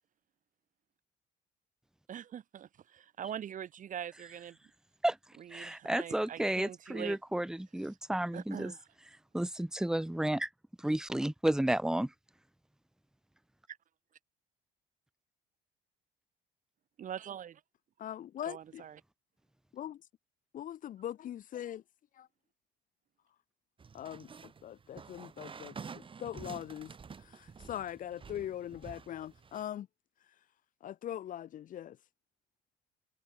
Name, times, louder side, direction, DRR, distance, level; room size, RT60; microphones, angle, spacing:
voice 1, 2.1-4.6 5.4-7.2 8.3-8.8 13.7-13.8 17.0-17.6 18.5-19.0, right 9 dB, 50° right, 2.7 m, -43 dB
voice 2, 5.5-8.7 9.3-10.5 10.8-12.1, right 1 dB, 5° right, 1.5 m, -32 dB
voice 3, 18.0-18.8 19.7-20.0 20.5-21.8 22.2-22.3 23.9-26.9 27.2-29.9 30.8-32.0, left 11 dB, 55° left, 0.9 m, -41 dB
sound 1, 23.8-29.6, right 5 dB, 30° right, 2.8 m, -49 dB
cardioid pair, 110°, 17 cm